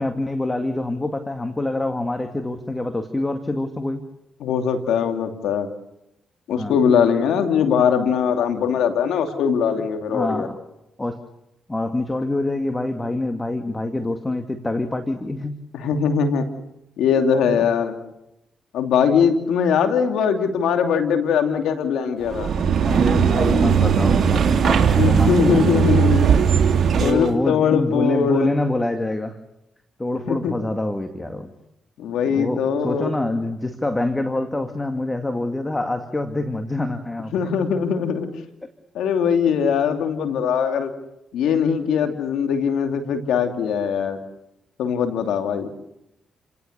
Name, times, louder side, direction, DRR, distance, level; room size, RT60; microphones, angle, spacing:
voice 1, 0.0-4.0 6.5-6.8 10.1-10.6 11.0-11.2 11.7-15.5 22.8-25.6 26.9-29.4 30.0-31.5 32.3-37.3 42.0-42.1, left 2 dB, 20° left, 7 dB, 2.1 m, -25 dB
voice 2, 4.4-5.7 6.5-10.5 15.7-16.5 17.0-17.9 18.7-22.5 24.9-26.5 27.0-28.5 30.3-30.5 32.0-33.1 37.3-38.3 38.9-40.9 41.3-44.2 44.8-45.7, left 7 dB, 80° left, 6 dB, 2.8 m, -21 dB
sound 1, 22.3-27.3, right 7 dB, 60° right, 3.3 m, -18 dB
29.5 x 18.0 x 6.8 m, 0.87 s
supercardioid pair, 60°, 0 cm